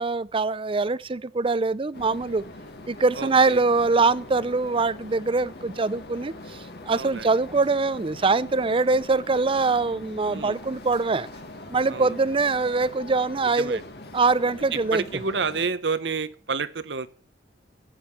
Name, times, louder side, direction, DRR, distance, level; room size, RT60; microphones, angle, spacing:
voice 1, 0.0-2.4 2.9-11.3 11.7-13.8 14.1-15.0, right 3 dB, 30° right, 0.5 m, -23 dB
sound 1, 1.9-15.7, left 2 dB, 65° left, 2.0 m, -42 dB
voice 2, 3.1-3.6 6.9-7.3 10.3-10.6 11.9-12.1 13.4-13.8 14.7-17.1, right 5 dB, 80° right, 1.0 m, -29 dB
12.5 x 8.5 x 7.0 m
head